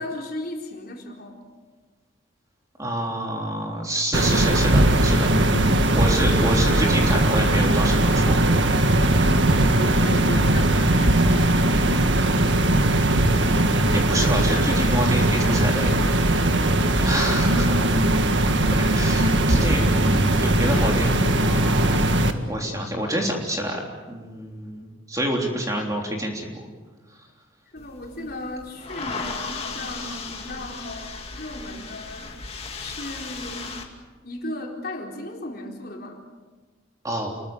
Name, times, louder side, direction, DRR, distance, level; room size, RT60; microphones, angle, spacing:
voice 1, 0.0-1.4 9.1-9.6 10.0-12.2 27.7-32.3 32.8-33.8 34.2-36.2, left 1 dB, 50° left, 0 dB, 4.3 m, -36 dB
voice 2, 2.8-5.3 5.9-8.4 13.2-15.9 17.0-17.9 18.8-19.8 20.3-22.1 22.5-23.8 24.1-26.6 30.0-30.2 37.0-37.3, right 1 dB, 15° right, 0 dB, 3.5 m, -28 dB
sound 1, 4.1-22.3, right 1 dB, 65° right, 1.8 m, -19 dB
sound 2, 27.8-33.8, left 4 dB, 30° left, 2.6 m, -36 dB
29.0 x 22.0 x 7.3 m, 1.3 s
head